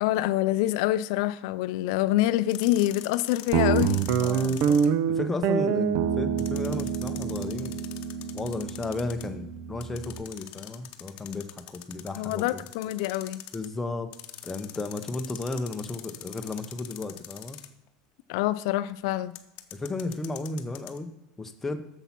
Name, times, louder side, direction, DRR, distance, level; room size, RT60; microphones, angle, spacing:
voice 1, 0.0-4.0 12.2-13.4 18.3-19.3, left 15 dB, 70° left, 0.3 m, -26 dB
sound 1, 2.5-4.9 6.4-9.3 9.8-13.7 14.1-17.9 19.3-21.0, left 14 dB, 50° left, 0.8 m, -43 dB
Guitar, 3.5-10.2, right 7 dB, 55° right, 0.6 m, -27 dB
voice 2, 4.2-4.8 5.1-7.8 8.3-12.6 13.5-14.1 14.4-17.6 19.7-21.1 21.4-21.8, left 3 dB, 10° left, 0.7 m, -34 dB
8.2 x 7.0 x 5.9 m
supercardioid pair, 150°, 3 cm